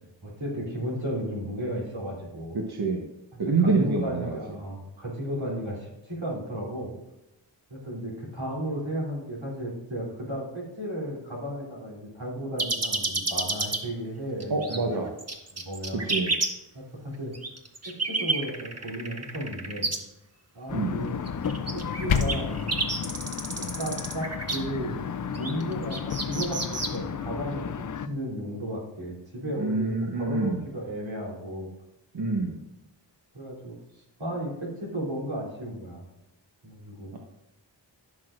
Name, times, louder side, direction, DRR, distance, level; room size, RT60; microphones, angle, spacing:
voice 1, 0.2-2.6 3.3-6.9 7.7-15.0 15.5-16.1 16.7-17.3 18.0-19.9 20.5-21.2 21.7-22.7 23.6-25.1 25.3-27.6 28.0-31.7 33.3-36.0 36.6-37.1, equal, 90° right, -4 dB, 3.3 m, -34 dB
voice 2, 2.5-3.0 3.4-4.4 14.5-15.1 15.9-16.3 20.7-20.9 29.6-30.6 32.1-32.6, right 3 dB, 55° right, 0 dB, 1.1 m, -26 dB
sound 1, 12.6-13.8 14.4-14.8 15.2-16.5 17.3-20.0 21.3-24.6 25.3-27.0, right 3 dB, 35° right, 1.2 m, -29 dB
sound 2, 20.7-28.1, left 7 dB, 45° left, 0.5 m, -33 dB
sound 3, 21.7-22.7, left 7 dB, 80° left, 0.7 m, -27 dB
15.0 x 6.3 x 2.5 m, 0.93 s
wide cardioid pair, 55°, 46 cm